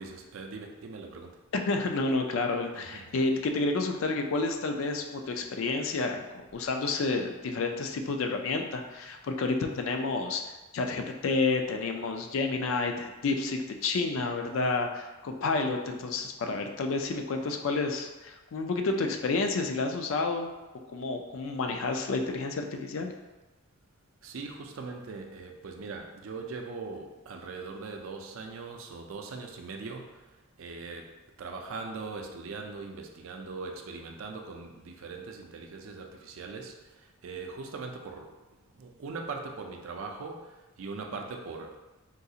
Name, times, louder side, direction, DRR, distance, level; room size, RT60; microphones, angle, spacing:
voice 1, 0.0-1.3 2.7-3.1 24.2-30.3 30.6-38.3 38.7-41.8, right 4 dB, 65° right, 3 dB, 0.4 m, -41 dB
voice 2, 1.7-20.5 20.9-23.1, left 3 dB, 65° left, 4 dB, 0.4 m, -30 dB
3.8 x 2.4 x 2.7 m, 1.1 s
head